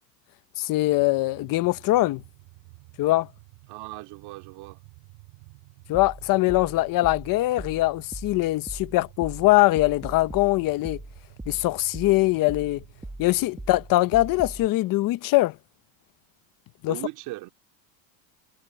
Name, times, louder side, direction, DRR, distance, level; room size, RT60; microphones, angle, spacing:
voice 1, 0.6-2.2 3.0-3.3 5.9-11.0 11.5-12.8 13.2-15.5 16.8-17.0, left 18 dB, 45° left, 1.0 m, -22 dB
sound 1, 0.9-14.6, right 40 dB or more, 75° right, 5.6 m, -51 dB
voice 2, 3.7-4.8 16.9-17.5, right 20 dB, 60° right, 2.6 m, -38 dB
sound 2, 5.9-14.7, right 2 dB, 5° right, 1.4 m, -41 dB
cardioid pair, 140°, 45 cm